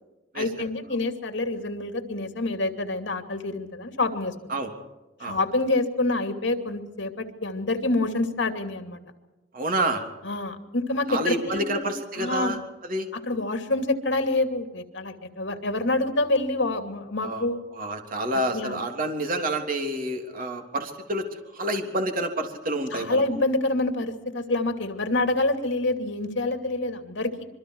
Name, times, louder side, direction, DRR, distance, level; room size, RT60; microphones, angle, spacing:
voice 1, 0.3-4.3 5.2-9.0 10.2-11.9 12.2-12.6 13.3-17.6 18.5-18.8 22.9-27.5, left 2 dB, 65° left, 6 dB, 2.7 m, -27 dB
voice 2, 9.5-10.0 11.1-12.6 12.8-13.1 17.2-17.5 17.7-23.2, right 1 dB, 45° right, 4 dB, 3.2 m, -28 dB
26.5 x 23.0 x 4.8 m, 1.1 s
head